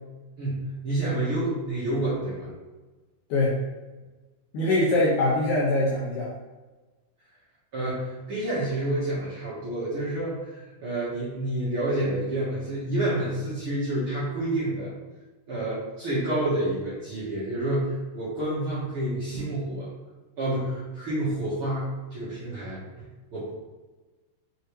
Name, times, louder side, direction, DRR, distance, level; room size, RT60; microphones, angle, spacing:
voice 1, 0.4-2.5 7.7-14.9 15.5-19.9 20.4-23.1 23.3-23.5, right 1 dB, 50° right, -10 dB, 1.8 m, -29 dB
voice 2, 3.3-3.6 4.5-6.3, left 2 dB, 70° left, -6 dB, 2.0 m, -23 dB
6.5 x 4.6 x 3.2 m, 1.2 s
omnidirectional pair, 4.5 m